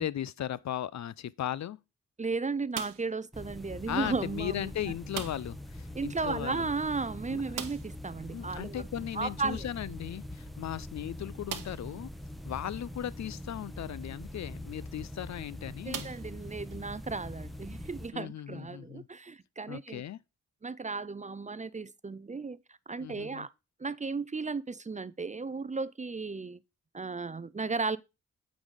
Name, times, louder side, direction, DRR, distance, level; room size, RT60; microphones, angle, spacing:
voice 1, 0.0-1.8 3.9-6.7 7.3-7.4 8.3-12.1 12.4-16.1 18.1-19.1 19.7-20.2 23.0-23.5, left 11 dB, 60° left, 0.5 m, -37 dB
voice 2, 2.2-4.7 5.9-8.9 9.1-9.6 15.9-20.0 20.6-23.5 23.8-26.6 26.9-28.0, right 4 dB, 25° right, 0.5 m, -35 dB
sound 1, 2.7-3.3 5.1-5.7 5.9-6.0 6.3-6.4 7.5-8.1 9.8-9.9 10.6-10.7 11.5-12.0 12.7-12.8 14.8-15.0 15.9-16.8, right 9 dB, 85° right, 0.9 m, -40 dB
sound 2, 3.3-18.1, left 1 dB, ahead, 0.9 m, -43 dB
8.7 x 4.0 x 4.8 m
cardioid pair, 50°, 31 cm